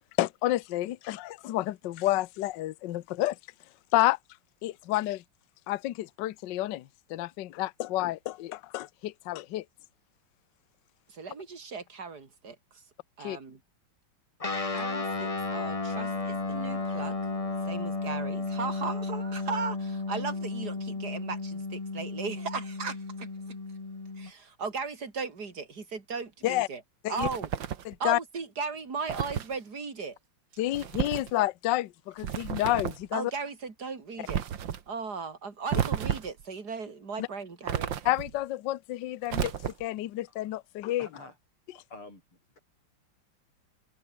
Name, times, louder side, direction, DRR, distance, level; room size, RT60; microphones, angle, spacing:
voice 1, 0.2-3.4 3.9-4.2 4.6-5.2 5.7-9.6 13.2-13.4 26.4-26.7 27.0-27.3 27.8-28.2 30.6-33.3 37.2-37.3 38.0-39.5 39.8-41.1, left 15 dB, 65° left, 1.3 m, -29 dB
voice 2, 11.1-12.8 13.2-13.6 14.7-17.2 17.6-23.3 24.2-26.8 27.1-27.5 28.0-30.2 33.1-34.4 34.9-37.9, right 5 dB, 45° right, 3.7 m, -37 dB
Guitar, 14.4-24.3, left 3 dB, 20° left, 1.2 m, -33 dB
sound 1, 27.2-27.9 29.1-29.5 30.7-31.3 32.2-33.1 34.3-34.8 35.7-36.4 37.7-38.4 39.3-40.0, right 9 dB, 65° right, 2.0 m, -32 dB
voice 3, 41.0-41.4 41.7-42.2, left 2 dB, 80° left, 8.7 m, -47 dB
omnidirectional pair, 2.3 m